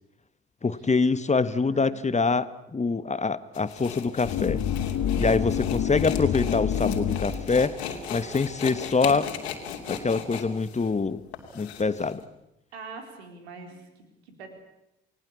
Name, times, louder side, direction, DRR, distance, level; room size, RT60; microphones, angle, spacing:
voice 1, 0.6-4.6 5.2-9.3 9.9-11.2 11.5-12.2, left 4 dB, 20° left, 14 dB, 1.4 m, -25 dB
voice 2, 1.7-2.1 12.7-14.5, right 4 dB, 75° right, 5 dB, 4.1 m, -44 dB
sound 1, 3.5-12.1, left 8 dB, 75° left, 2.8 m, -37 dB
sound 2, 4.2-7.7, left 8 dB, 55° left, 1.8 m, -27 dB
29.5 x 18.5 x 8.6 m, 0.88 s
figure-of-eight pair, 45°, 32 cm